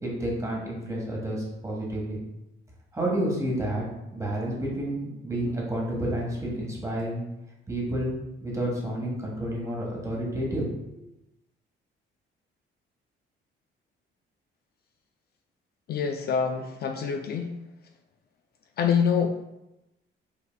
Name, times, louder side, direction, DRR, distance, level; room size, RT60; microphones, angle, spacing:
voice 1, 0.0-2.2 2.9-3.8 4.1-7.2 7.7-8.1 8.4-10.7 10.9-11.0, right 1 dB, 15° right, -3 dB, 1.4 m, -30 dB
voice 2, 15.9-17.5 18.8-19.4, left 6 dB, 50° left, 5 dB, 0.4 m, -26 dB
5.4 x 4.1 x 2.2 m, 0.91 s
cardioid pair, 130°, 21 cm